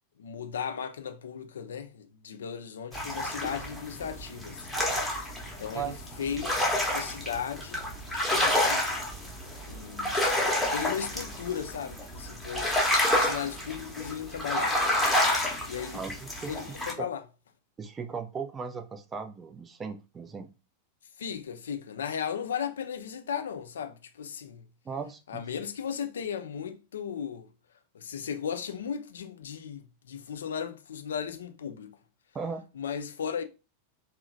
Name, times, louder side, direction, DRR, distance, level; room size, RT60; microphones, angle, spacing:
voice 1, 0.2-4.8 5.1-5.3 5.6-6.5 6.9-7.9 8.3-8.9 9.7-10.2 10.7-12.8 13.1-14.8 15.7-16.0 16.5-17.2 21.2-24.7 25.3-27.5 27.9-32.0 32.7-33.4, left 7 dB, 65° left, 0.3 m, -36 dB
sound 1, 2.9-16.9, left 1 dB, ahead, 0.7 m, -29 dB
voice 2, 15.9-16.5 17.0-17.1 17.8-20.5 24.9-25.4 32.3-32.6, right 5 dB, 20° right, 0.3 m, -37 dB
2.7 x 2.0 x 2.5 m
figure-of-eight pair, 90°, 0 cm